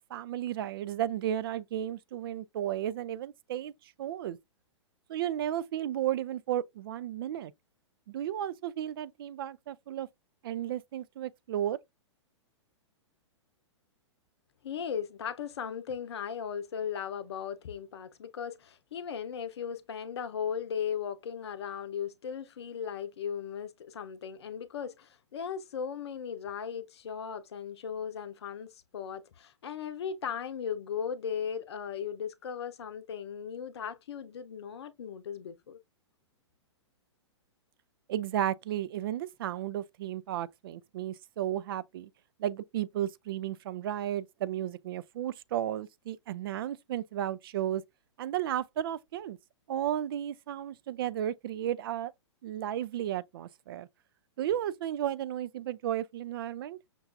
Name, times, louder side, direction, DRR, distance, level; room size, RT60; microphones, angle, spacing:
voice 1, 0.0-3.7 4.0-4.4 5.1-7.5 8.1-10.1 10.4-11.8 38.1-42.1 42.4-47.8 48.2-49.4 49.7-52.1 52.4-53.9 54.4-56.8, right 11 dB, 50° right, 0.4 m, -33 dB
voice 2, 14.6-35.8, left 7 dB, 60° left, 0.7 m, -37 dB
5.9 x 2.3 x 2.3 m
figure-of-eight pair, 110°, 15 cm